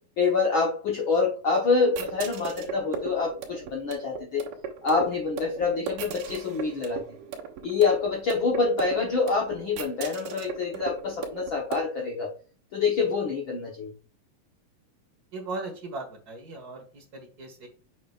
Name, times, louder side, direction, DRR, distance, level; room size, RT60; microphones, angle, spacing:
voice 1, 0.2-4.5 4.8-7.0 7.6-12.3 12.7-13.9, left 4 dB, 85° left, -1 dB, 1.1 m, -26 dB
sound 1, 1.9-11.8, right 7 dB, 75° right, 2.8 m, -38 dB
voice 2, 15.3-17.7, right 3 dB, 50° right, 3 dB, 1.1 m, -38 dB
8.0 x 6.1 x 2.4 m, 0.39 s
omnidirectional pair, 4.0 m